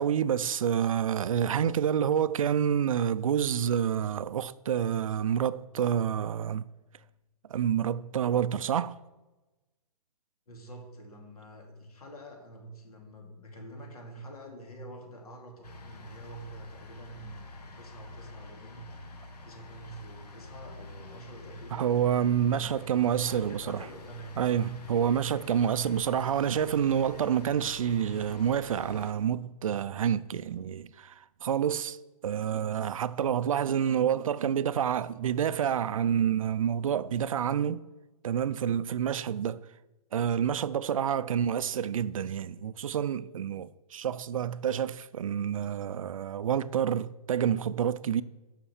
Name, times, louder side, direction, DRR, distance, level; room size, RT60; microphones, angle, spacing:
voice 1, 0.0-6.7 7.5-9.0 21.7-23.9 24.4-31.1 31.4-32.0 32.2-37.8 38.2-39.6 40.1-48.2, right 8 dB, 60° right, 0.5 m, -28 dB
voice 2, 10.5-18.9 19.4-21.9 22.2-24.4, right 1 dB, 70° left, 2.6 m, -47 dB
sound 1, 15.6-29.1, left 2 dB, 85° left, 1.5 m, -47 dB
7.0 x 5.9 x 7.2 m
hypercardioid pair, 165°, 20 cm